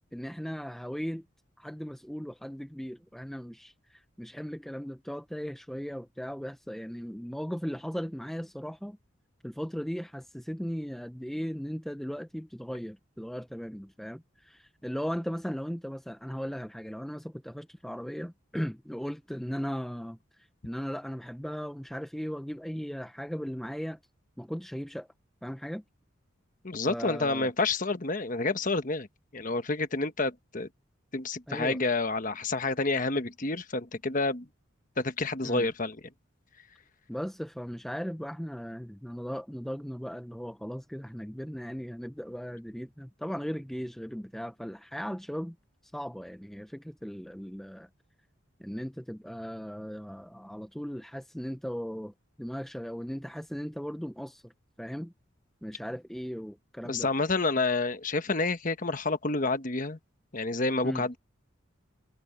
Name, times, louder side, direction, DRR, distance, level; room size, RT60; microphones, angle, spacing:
voice 1, 0.1-1.2 1.6-9.0 9.4-20.2 20.6-24.0 24.4-25.1 25.4-25.8 26.9-27.5 31.5-31.8 35.4-35.7 37.1-45.6 45.9-47.9 48.6-54.5 54.8-55.1 55.6-57.1 60.8-61.1, equal, ahead, 0.6 m, -37 dB
voice 2, 26.6-29.1 29.3-30.7 31.1-34.5 35.0-36.0 56.8-60.0 60.3-61.2, left 3 dB, 40° left, 1.2 m, -29 dB
head